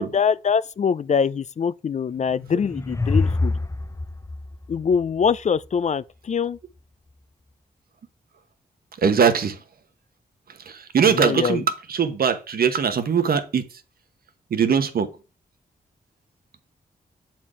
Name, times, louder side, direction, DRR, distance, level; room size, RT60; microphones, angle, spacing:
voice 1, 0.0-3.5 4.7-6.6 11.0-11.6, left 6 dB, 45° left, 0.4 m, -23 dB
sound 1, 2.2-5.7, left 3 dB, 20° left, 0.8 m, -26 dB
voice 2, 9.0-9.6 10.7-11.6 11.9-13.6 14.5-15.1, right 7 dB, 65° right, 1.1 m, -21 dB
7.2 x 4.4 x 4.9 m
cardioid pair, 50°, 16 cm